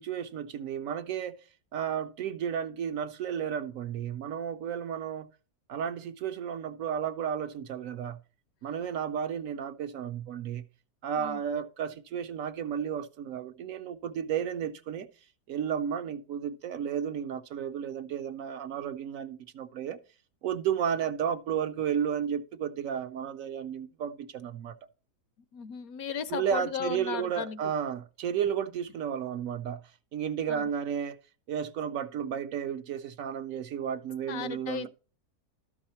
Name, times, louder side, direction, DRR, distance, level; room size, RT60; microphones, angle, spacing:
voice 1, 0.0-1.4 1.7-5.3 5.7-8.2 8.6-10.6 11.0-15.1 15.5-20.0 20.4-24.7 26.3-29.8 30.1-31.2 31.5-34.9, right 8 dB, 70° right, 0.9 m, -33 dB
voice 2, 25.5-27.6 30.5-30.7 34.3-34.9, left 8 dB, 75° left, 1.0 m, -36 dB
13.0 x 4.8 x 4.3 m
omnidirectional pair, 1.6 m